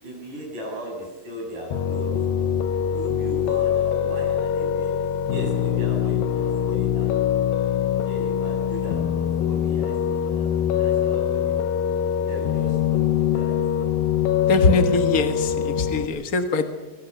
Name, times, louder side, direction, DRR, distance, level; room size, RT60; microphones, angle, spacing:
voice 1, 0.0-2.1 2.9-7.2 8.0-11.5 12.2-13.6 14.4-14.5 15.2-15.3 15.9-16.0, equal, 60° right, 0 dB, 8.6 m, -37 dB
Piano, 1.7-16.1, left 9 dB, 85° left, 2.8 m, -23 dB
voice 2, 14.5-16.6, left 3 dB, 70° left, 7 dB, 0.8 m, -21 dB
23.5 x 23.0 x 6.9 m, 1.2 s
omnidirectional pair, 4.0 m